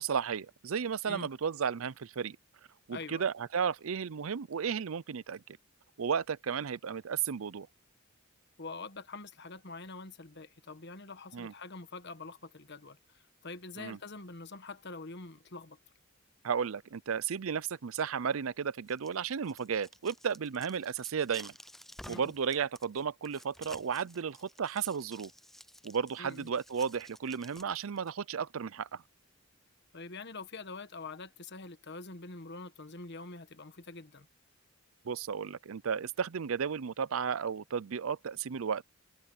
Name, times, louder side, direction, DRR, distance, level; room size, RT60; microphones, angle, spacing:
voice 1, 0.0-2.4 2.9-5.4 6.0-7.7 11.3-11.5 13.8-14.0 16.4-21.5 22.1-25.3 25.8-29.0 35.0-38.8, right 6 dB, 70° right, 0.5 m, -34 dB
voice 2, 2.9-3.3 8.6-15.8 22.0-22.3 26.2-26.5 29.9-34.3, left 3 dB, 50° left, 1.4 m, -45 dB
sound 1, 18.7-28.1, equal, ahead, 0.5 m, -53 dB
head